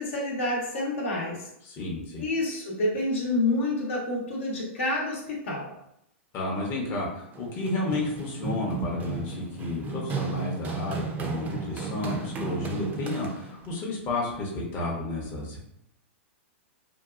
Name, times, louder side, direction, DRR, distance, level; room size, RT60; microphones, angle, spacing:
voice 1, 0.0-1.5 2.2-5.7, left 2 dB, 75° left, -3 dB, 0.9 m, -28 dB
voice 2, 1.6-2.3 6.3-15.6, left 2 dB, 35° left, -3 dB, 0.7 m, -31 dB
Run, 7.3-13.7, right 4 dB, 25° right, 0.4 m, -34 dB
2.7 x 2.3 x 2.3 m, 0.79 s
hypercardioid pair, 120°, 7 cm